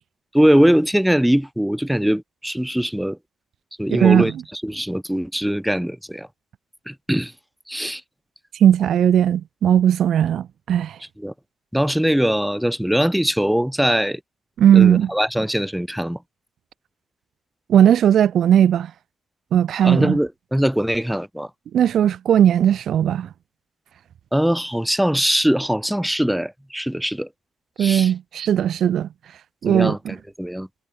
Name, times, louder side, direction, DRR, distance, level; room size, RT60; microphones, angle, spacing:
voice 1, 0.3-3.2 3.8-6.3 6.9-7.3 7.7-8.0 11.2-11.3 11.7-14.2 14.7-16.2 19.8-21.5 24.3-27.3 27.8-28.1 29.6-30.7, equal, 5° right, 5.0 m, -21 dB
voice 2, 3.9-4.3 8.6-11.0 14.6-15.1 17.7-18.9 19.5-20.2 21.7-23.3 27.8-29.1 29.6-30.1, right 9 dB, 65° right, 3.7 m, -17 dB
cardioid pair, 90°, 0 cm